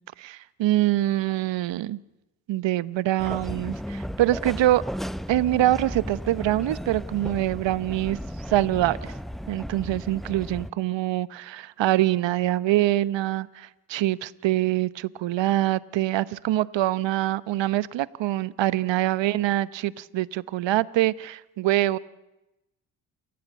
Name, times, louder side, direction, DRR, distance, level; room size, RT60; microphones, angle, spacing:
voice 1, 0.2-2.0 2.5-4.8 5.3-8.2 8.5-9.1 9.5-22.0, right 14 dB, 60° right, 18 dB, 1.0 m, -24 dB
sound 1, 3.2-10.7, equal, ahead, 0.8 m, -35 dB
28.5 x 14.0 x 8.3 m, 0.97 s
hypercardioid pair, 50°, 49 cm